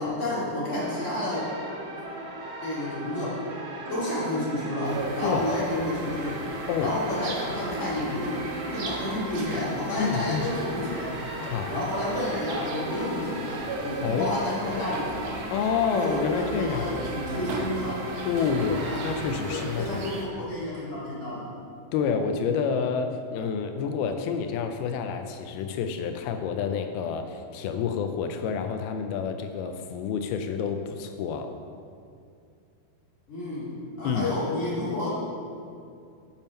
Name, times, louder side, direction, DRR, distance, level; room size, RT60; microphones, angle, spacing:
voice 1, 0.0-1.4 2.6-3.4 3.9-6.4 6.8-8.4 8.7-11.1 11.7-15.4 15.9-18.0 18.4-19.0 19.5-21.5 33.3-33.7 34.0-35.1, left 1 dB, 25° left, -8 dB, 1.8 m, -30 dB
sound 1, 0.7-19.3, right 2 dB, 70° right, 3.2 m, -37 dB
sound 2, 4.8-20.2, right 2 dB, 85° right, 1.5 m, -39 dB
voice 2, 10.0-10.5 11.4-11.8 14.0-14.3 15.5-16.9 18.2-20.1 21.9-31.5 34.0-34.3, left 6 dB, 80° left, 7 dB, 2.3 m, -28 dB
7.3 x 7.2 x 5.3 m, 2.4 s
omnidirectional pair, 4.7 m